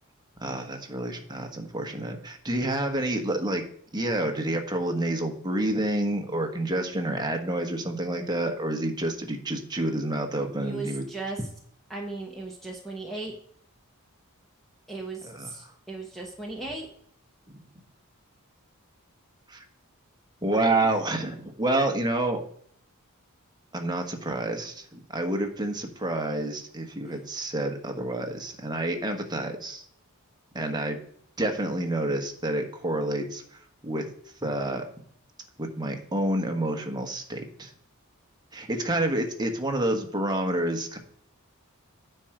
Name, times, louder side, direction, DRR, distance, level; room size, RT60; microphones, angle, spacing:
voice 1, 0.4-3.6 3.9-11.0 15.2-15.5 17.5-17.6 19.5-19.6 20.4-22.4 23.7-29.8 30.5-31.0 31.4-33.4 33.8-34.1 34.4-34.8 35.6-37.7 38.5-41.0, right 1 dB, 20° right, 4 dB, 1.4 m, -28 dB
voice 2, 10.6-11.5 11.9-13.3 14.9-16.9, right 3 dB, ahead, -2 dB, 1.3 m, -36 dB
9.7 x 4.6 x 6.4 m, 0.62 s
head